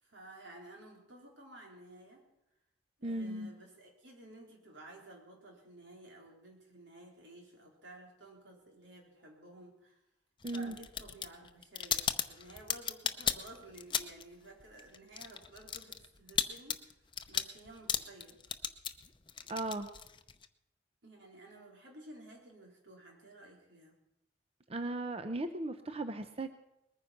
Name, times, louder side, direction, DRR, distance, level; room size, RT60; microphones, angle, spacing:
voice 1, 0.0-2.3 3.0-10.0 10.5-16.9 17.3-18.4 21.0-23.9, right 1 dB, 85° right, 0 dB, 3.9 m, -54 dB
voice 2, 3.0-3.5 10.4-10.8 19.5-19.9 24.7-26.5, right 2 dB, 35° right, 9 dB, 0.7 m, -37 dB
sound 1, 10.4-14.3 14.6-20.5, left 7 dB, 25° left, 0.7 m, -36 dB
20.5 x 9.7 x 5.9 m, 0.86 s
head